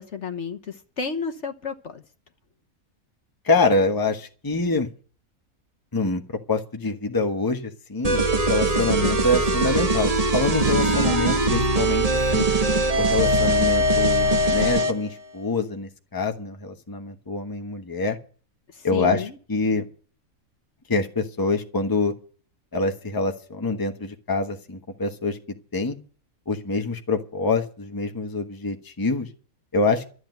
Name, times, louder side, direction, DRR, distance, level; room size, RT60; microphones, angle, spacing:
voice 1, 0.0-2.0 9.0-9.2 18.7-19.4, left 6 dB, 55° left, 6 dB, 1.4 m, -31 dB
voice 2, 3.4-4.9 5.9-6.2 6.5-12.0 12.3-12.5 13.0-18.2 18.8-19.9 20.9-22.1 22.7-25.4 25.7-26.0 26.5-29.3 29.7-30.0, left 3 dB, 15° left, 5 dB, 1.1 m, -25 dB
sound 1, 8.0-15.0, right 1 dB, 30° right, 1.2 m, -21 dB
13.0 x 8.0 x 9.1 m, 0.42 s
omnidirectional pair, 1.5 m